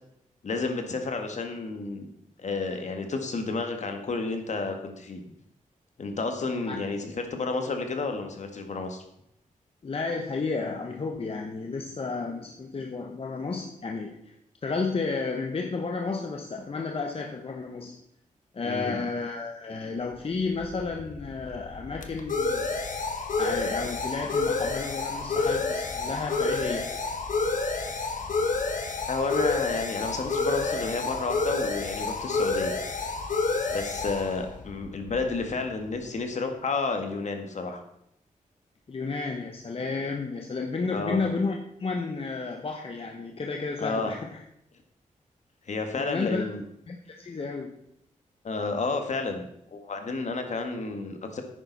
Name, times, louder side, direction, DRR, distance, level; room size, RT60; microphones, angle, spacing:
voice 1, 0.4-2.1 2.4-5.2 6.0-9.0 18.6-19.0 29.1-32.7 33.7-37.8 40.9-41.2 43.8-44.1 45.7-46.6 48.4-51.4, left 3 dB, 60° left, 5 dB, 1.8 m, -31 dB
voice 2, 9.8-14.3 14.6-18.0 18.5-22.6 23.4-26.9 38.9-44.4 45.9-46.5 46.9-47.8, left 4 dB, 45° left, 3 dB, 1.0 m, -32 dB
sound 1, 20.4-35.8, left 3 dB, 75° left, 1.2 m, -29 dB
10.5 x 9.1 x 4.1 m, 0.77 s
wide cardioid pair, 90°, 13 cm